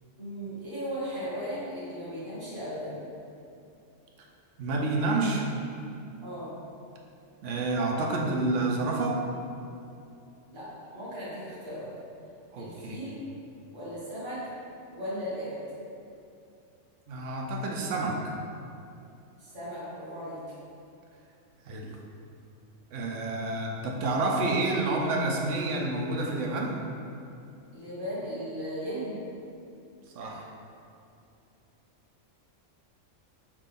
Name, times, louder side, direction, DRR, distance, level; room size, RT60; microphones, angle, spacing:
voice 1, 0.2-3.0 6.2-6.5 10.5-11.9 12.6-13.2 13.7-14.5 14.9-15.5 19.4-20.4 27.7-29.2, equal, 20° right, -11 dB, 1.4 m, -36 dB
voice 2, 4.6-5.5 7.4-9.2 12.5-13.0 17.1-18.4 21.7-22.0 22.9-26.8 30.1-30.5, right 2 dB, 75° right, 0 dB, 0.9 m, -29 dB
5.9 x 2.5 x 3.5 m, 2.7 s
omnidirectional pair, 1.3 m